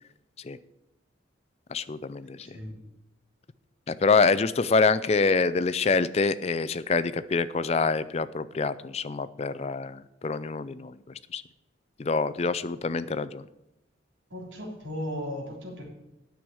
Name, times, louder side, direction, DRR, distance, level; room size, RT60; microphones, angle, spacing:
voice 1, 1.7-2.5 3.9-11.0 11.3-11.4 12.0-13.4, left 4 dB, 30° left, 15 dB, 0.4 m, -26 dB
voice 2, 2.4-2.8 14.3-15.9, equal, 70° right, -2 dB, 3.4 m, -36 dB
9.2 x 6.3 x 8.5 m, 0.90 s
head